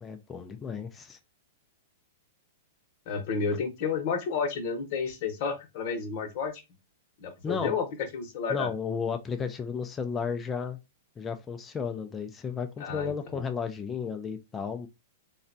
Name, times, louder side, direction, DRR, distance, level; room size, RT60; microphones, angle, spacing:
voice 1, 0.0-1.2 7.4-7.8 8.5-10.8 11.2-14.9, left 6 dB, 20° left, 0.4 m, -33 dB
voice 2, 3.1-6.6 7.2-7.9 8.1-8.7 12.8-13.4, left 5 dB, 50° left, 0.9 m, -31 dB
3.9 x 2.2 x 2.6 m
hypercardioid pair, 130°, 0 cm